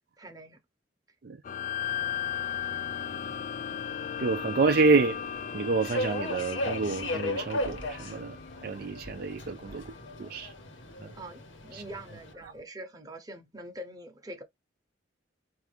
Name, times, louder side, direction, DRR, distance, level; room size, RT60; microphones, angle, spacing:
voice 1, 0.2-0.6 11.1-14.4, right 1 dB, 20° right, 0.9 m, -44 dB
sound 1, 1.4-10.2, left 9 dB, 45° left, 0.3 m, -37 dB
Subway metro underground, 1.8-12.3, left 1 dB, 85° left, 1.3 m, -38 dB
voice 2, 4.2-5.2 5.5-8.4 8.6-10.5 11.0-11.1 11.7-11.8 12.4-12.5, right 4 dB, 50° right, 0.4 m, -28 dB
4.7 x 2.7 x 3.3 m
head